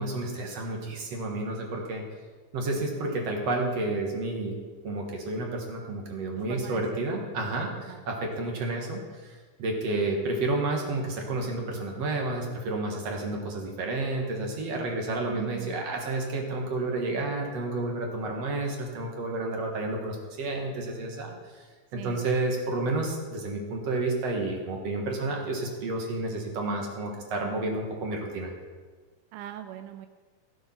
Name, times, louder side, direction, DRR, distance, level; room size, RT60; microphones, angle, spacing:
voice 1, 0.0-2.0 2.5-4.6 4.8-21.7 21.9-28.5, right 2 dB, 60° right, 1 dB, 2.5 m, -30 dB
voice 2, 6.5-7.0 7.9-8.0 15.4-15.8 22.0-22.2 29.3-30.1, right 12 dB, 85° right, 8 dB, 2.0 m, -40 dB
16.0 x 6.7 x 5.9 m, 1.4 s
omnidirectional pair, 3.6 m